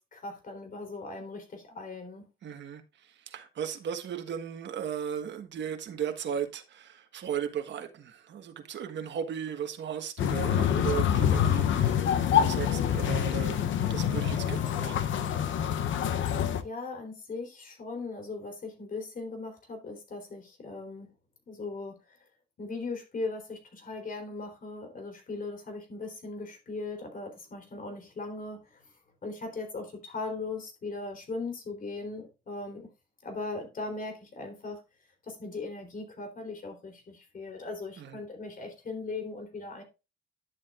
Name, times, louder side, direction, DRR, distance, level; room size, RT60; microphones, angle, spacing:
voice 1, 0.0-2.3 16.6-21.1 21.5-22.2 22.6-28.8 29.2-32.9 33.2-34.8 35.2-39.8, left 3 dB, 45° left, 3.6 m, -39 dB
voice 2, 2.4-2.8 3.3-15.1 38.0-38.2, right 8 dB, 65° right, 1.5 m, -36 dB
sound 1, 10.2-16.6, left 9 dB, 75° left, 0.8 m, -26 dB
10.5 x 7.4 x 2.5 m
cardioid pair, 90°, 20 cm